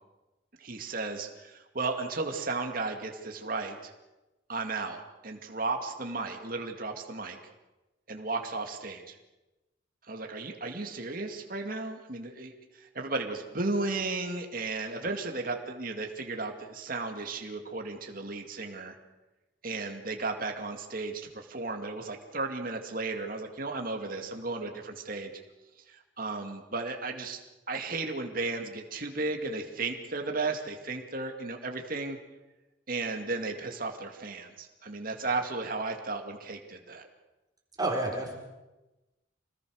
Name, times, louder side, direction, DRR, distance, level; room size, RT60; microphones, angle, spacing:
voice 1, 0.6-3.9 4.5-7.4 8.1-9.2 10.1-19.0 19.6-25.3 25.9-27.4 27.7-32.2 32.9-37.1, right 3 dB, 45° right, 4 dB, 2.3 m, -34 dB
voice 2, 37.8-38.4, right 2 dB, 20° right, 0 dB, 4.3 m, -29 dB
26.0 x 19.5 x 6.5 m, 1.0 s
head